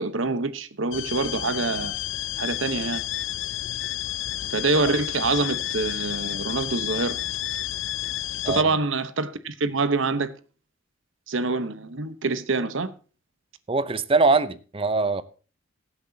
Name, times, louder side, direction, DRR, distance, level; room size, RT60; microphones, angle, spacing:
voice 1, 0.0-1.9 2.4-3.0 4.5-7.2 8.5-10.3 11.3-12.9, right 3 dB, 75° right, 1.0 m, -26 dB
sound 1, 0.9-8.6, left 14 dB, 70° left, 0.4 m, -31 dB
voice 2, 13.7-15.2, right 3 dB, 30° right, 0.7 m, -22 dB
21.0 x 8.0 x 2.8 m
head